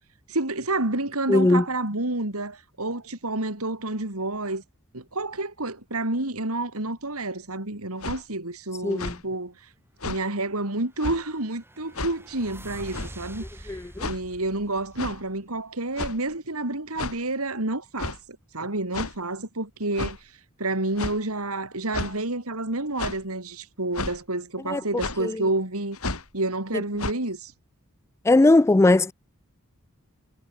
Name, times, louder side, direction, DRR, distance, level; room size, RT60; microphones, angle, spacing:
voice 1, 0.3-4.6 4.9-9.5 10.0-13.4 14.0-18.1 18.5-20.2 20.6-26.0 26.3-27.5, right 2 dB, 75° right, 4.2 m, -29 dB
voice 2, 1.3-1.6 8.8-9.1 13.7-14.1 24.7-24.8 25.2-25.4 28.3-29.1, left 2 dB, 10° left, 0.3 m, -19 dB
sound 1, 8.0-8.2 8.9-9.2 10.0-10.2 11.0-11.2 11.9-12.2 12.9-13.2 14.0-14.2 15.0-15.2 16.0-16.3 17.0-17.2 18.0-18.2 18.9-19.2 19.9-20.2 21.0-21.2 21.9-22.1 23.0-23.2 23.9-24.2 25.0-25.2 25.9-26.3 27.0-27.1, left 2 dB, 70° left, 5.4 m, -32 dB
sound 2, 10.8-15.7, right 1 dB, 10° right, 6.1 m, -45 dB
head